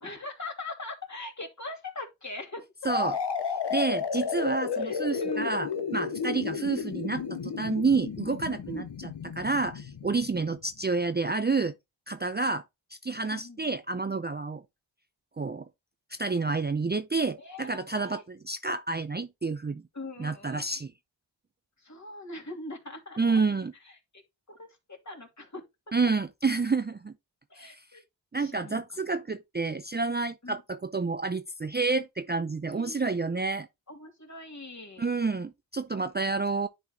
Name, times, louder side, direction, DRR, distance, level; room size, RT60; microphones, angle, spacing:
voice 1, 0.0-2.6 3.0-3.1 4.8-5.6 6.2-6.5 8.7-8.9 13.3-13.7 17.4-18.2 19.9-20.7 21.8-23.4 23.8-23.9 24.5-25.6 27.5-28.0 28.3-28.8 30.4-30.6 32.7-33.1 33.9-35.1, left 2 dB, 35° left, 2.7 m, -41 dB
voice 2, 2.8-3.2 3.7-9.1 9.4-11.7 12.1-12.6 13.0-14.6 15.4-15.7 16.1-19.8 20.2-20.9 23.2-23.7 25.9-27.1 27.6-27.8 28.3-33.7 35.0-36.7, right 4 dB, 20° right, 0.6 m, -29 dB
sound 1, 2.9-10.5, left 6 dB, 60° left, 1.1 m, -33 dB
10.5 x 4.3 x 2.9 m
cardioid pair, 50°, 46 cm